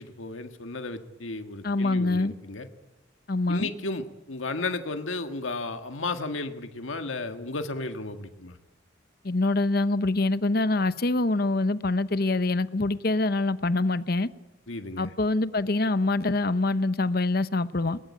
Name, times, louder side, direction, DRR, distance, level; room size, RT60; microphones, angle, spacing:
voice 1, 0.0-2.7 3.5-8.6 14.7-15.1, left 3 dB, 85° left, 7 dB, 1.8 m, -34 dB
voice 2, 1.6-2.3 3.3-3.7 9.2-14.3 15.0-18.0, left 2 dB, 50° left, 14 dB, 0.8 m, -25 dB
21.0 x 20.5 x 8.7 m, 0.99 s
head